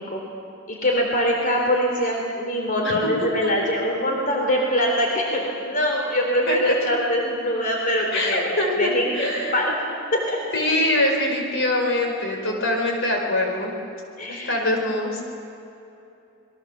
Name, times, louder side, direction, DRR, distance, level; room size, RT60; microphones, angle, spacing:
voice 1, 0.7-9.8 10.1-10.4 14.2-14.5, equal, 45° left, 0 dB, 3.7 m, -23 dB
voice 2, 8.1-9.6 10.5-13.7 14.3-15.2, left 1 dB, 65° left, 1 dB, 4.8 m, -23 dB
28.0 x 22.0 x 7.2 m, 2.8 s
head